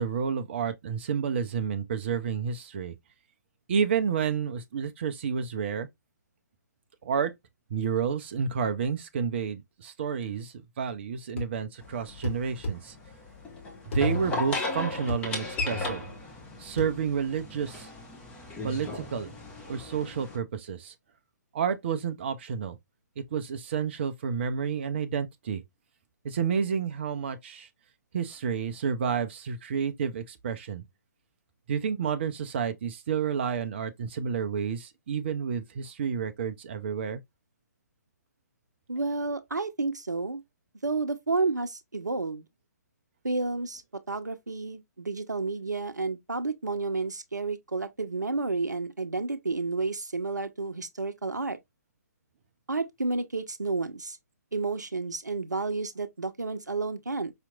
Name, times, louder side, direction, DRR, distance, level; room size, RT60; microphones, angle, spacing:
voice 1, 0.0-2.9 3.7-5.9 7.0-7.3 7.7-13.0 13.9-16.0 16.6-17.9 18.6-19.3 19.7-20.9 21.5-22.8 23.2-25.6 26.2-27.7 28.1-30.8 31.7-37.2, right 7 dB, 40° right, 0.5 m, -30 dB
sound 1, 11.4-11.6 12.2-12.8 13.9-14.1 15.1-15.3 15.6-15.7 16.8-16.9, equal, 45° left, 1.5 m, -31 dB
sound 2, 11.8-20.4, left 2 dB, 10° left, 0.9 m, -36 dB
voice 2, 38.9-40.4 40.8-42.4 43.2-43.8 44.1-51.6 52.7-54.2 54.5-57.3, right 3 dB, 75° right, 0.7 m, -31 dB
4.9 x 2.8 x 2.3 m
figure-of-eight pair, 130°, 10 cm